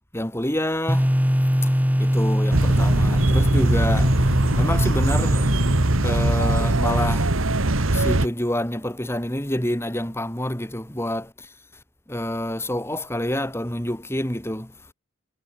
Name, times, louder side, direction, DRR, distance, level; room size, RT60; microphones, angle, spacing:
voice 1, 0.1-1.2 1.6-4.3 4.6-5.5 6.0-7.4 7.9-11.5 12.1-14.7, left 1 dB, 10° left, 3.9 m, -28 dB
sound 1, 0.9-7.7, equal, 10° right, 6.1 m, -23 dB
sound 2, 2.5-8.3, right 2 dB, 90° right, 2.0 m, -21 dB
head